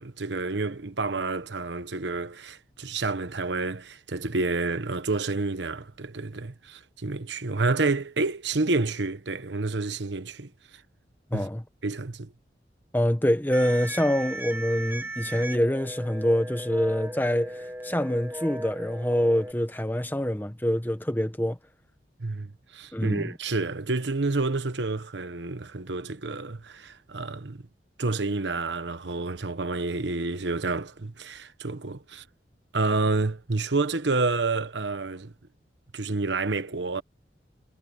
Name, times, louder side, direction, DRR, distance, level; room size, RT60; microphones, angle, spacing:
voice 1, 0.0-10.5 11.3-11.5 11.8-12.3 22.2-27.6 28.0-32.2 32.7-35.3 35.9-37.0, right 3 dB, 85° right, 1.2 m, -29 dB
voice 2, 11.3-11.6 12.9-21.6 22.9-23.3, equal, 10° left, 1.4 m, -25 dB
sound 1, 13.5-19.5, right 1 dB, 10° right, 1.4 m, -37 dB
head